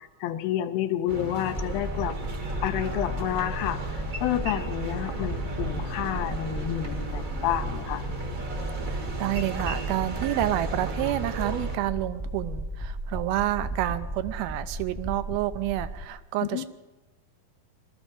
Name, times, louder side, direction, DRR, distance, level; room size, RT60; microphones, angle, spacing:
voice 1, 0.2-2.2 2.6-3.8 4.2-8.0 16.5-16.6, left 12 dB, 80° left, 9 dB, 2.5 m, -29 dB
sound 1, 1.1-11.8, right 2 dB, 50° right, 1.0 m, -36 dB
sound 2, 1.6-16.0, right 1 dB, 15° left, 0.9 m, -35 dB
voice 2, 8.9-16.6, right 14 dB, 85° right, 12 dB, 2.5 m, -29 dB
19.5 x 13.0 x 5.3 m, 1.2 s
omnidirectional pair, 4.4 m